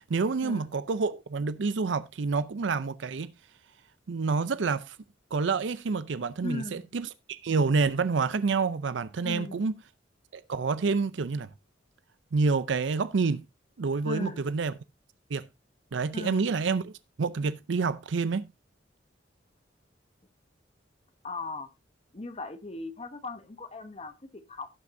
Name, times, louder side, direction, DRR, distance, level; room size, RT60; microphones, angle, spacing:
voice 1, 0.0-3.3 4.1-5.0 5.3-9.7 10.3-11.5 12.3-13.4 13.8-14.7 15.3-15.4 15.9-16.9 17.2-18.5, right 4 dB, 75° right, 0.5 m, -28 dB
voice 2, 6.4-6.9 9.2-9.7 14.0-14.4 16.1-16.5 21.2-21.7 22.1-24.7, left 2 dB, 35° left, 0.9 m, -38 dB
17.5 x 6.0 x 2.6 m
head